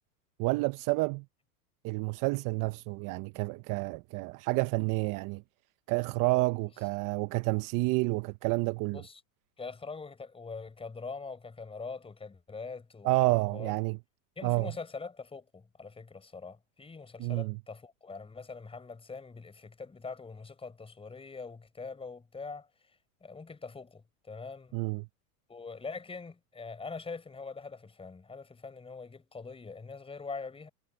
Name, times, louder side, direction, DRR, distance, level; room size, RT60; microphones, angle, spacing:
voice 1, 0.4-1.2 1.8-5.4 5.9-9.0 13.0-14.0 14.4-14.7 17.2-17.5 24.7-25.1, right 24 dB, 45° right, 0.9 m, -29 dB
voice 2, 8.9-9.2 9.6-13.7 14.4-22.7 23.2-24.7 25.5-30.7, left 4 dB, 10° left, 4.5 m, -43 dB
supercardioid pair, 120°, 46 cm